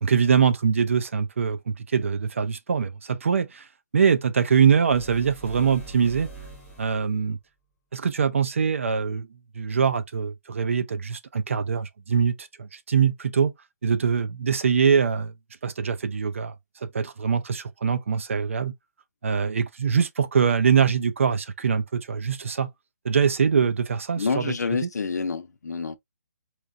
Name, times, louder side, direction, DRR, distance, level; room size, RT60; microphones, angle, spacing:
voice 1, 0.0-3.7 3.9-6.3 6.8-7.4 7.9-9.3 9.5-13.5 13.8-15.3 15.6-16.5 16.8-18.7 19.2-22.7 23.0-24.9, right 6 dB, 50° right, 0.5 m, -23 dB
sound 1, 4.8-7.2, right 3 dB, ahead, 1.6 m, -43 dB
voice 2, 24.2-26.0, left 5 dB, 80° left, 0.6 m, -28 dB
4.3 x 2.4 x 2.5 m
hypercardioid pair, 175°, 9 cm